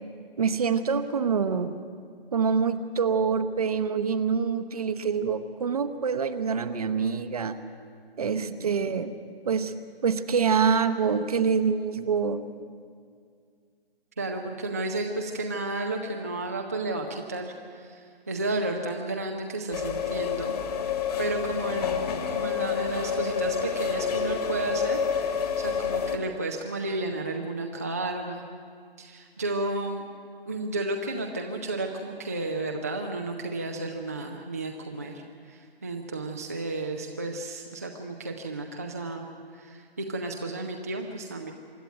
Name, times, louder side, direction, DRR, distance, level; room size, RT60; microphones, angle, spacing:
voice 1, 0.4-1.8 2.3-7.6 8.2-9.1 9.4-9.7 10.0-12.4, right 6 dB, 40° right, 11 dB, 1.0 m, -26 dB
voice 2, 8.4-8.8 14.2-20.6 21.2-28.4 29.0-30.0 30.5-39.3 39.5-41.5, right 2 dB, 15° right, 2 dB, 0.5 m, -32 dB
sound 1, 19.7-26.2, left 7 dB, 40° left, 1.9 m, -28 dB
25.5 x 11.0 x 9.2 m, 2.2 s
figure-of-eight pair, 150°, 30 cm